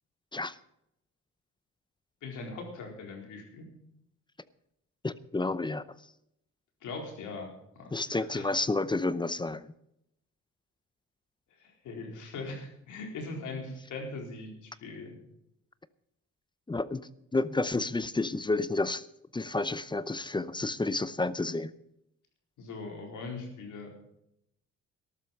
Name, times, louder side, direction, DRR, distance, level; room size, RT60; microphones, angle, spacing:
voice 1, 2.2-3.7 6.8-7.5 7.8-8.5 11.6-15.2 22.6-23.9, left 3 dB, 80° left, 2 dB, 4.4 m, -40 dB
voice 2, 5.0-5.8 7.9-9.7 16.7-17.0 17.3-19.0 19.3-21.7, left 2 dB, 15° left, 16 dB, 0.7 m, -30 dB
14.0 x 12.5 x 5.4 m, 0.79 s
cardioid pair, 90°, 30 cm